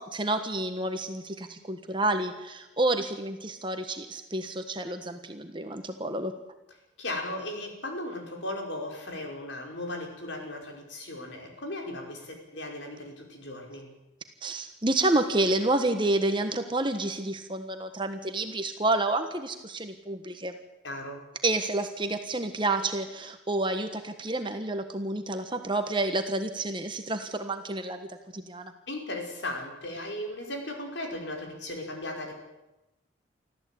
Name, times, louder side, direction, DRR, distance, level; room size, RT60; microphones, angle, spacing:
voice 1, 0.0-6.3 14.4-20.5 21.4-28.1 28.3-28.7, right 2 dB, 25° right, 7 dB, 1.4 m, -29 dB
voice 2, 7.0-13.9 20.8-21.2 28.9-32.3, left 1 dB, 70° left, 2 dB, 5.4 m, -36 dB
25.0 x 14.5 x 8.7 m, 0.96 s
head